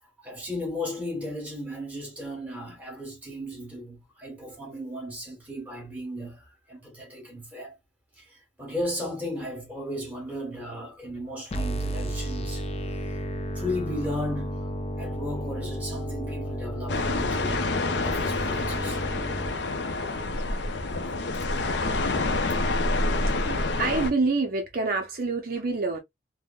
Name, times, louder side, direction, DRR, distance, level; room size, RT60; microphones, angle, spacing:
voice 1, 0.0-7.7 8.2-13.2 13.5-14.6 15.0-19.0 21.5-22.1, left 1 dB, 10° right, 1.6 m, -36 dB
sound 1, 11.5-19.5, equal, 35° left, 0.5 m, -32 dB
sound 2, 16.9-24.1, left 2 dB, 80° left, 0.6 m, -27 dB
voice 2, 22.8-26.0, right 3 dB, 55° right, 0.6 m, -28 dB
3.4 x 2.1 x 2.4 m
head